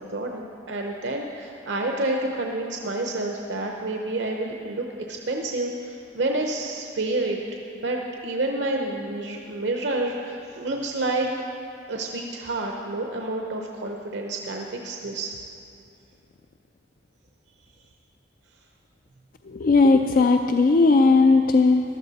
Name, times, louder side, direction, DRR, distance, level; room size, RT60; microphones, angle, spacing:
voice 1, 0.7-7.4 7.7-11.3 11.9-15.4, right 2 dB, 65° right, 1 dB, 0.7 m, -29 dB
voice 2, 19.6-21.8, left 3 dB, 45° left, 6 dB, 0.4 m, -17 dB
14.5 x 12.0 x 4.1 m, 2.6 s
head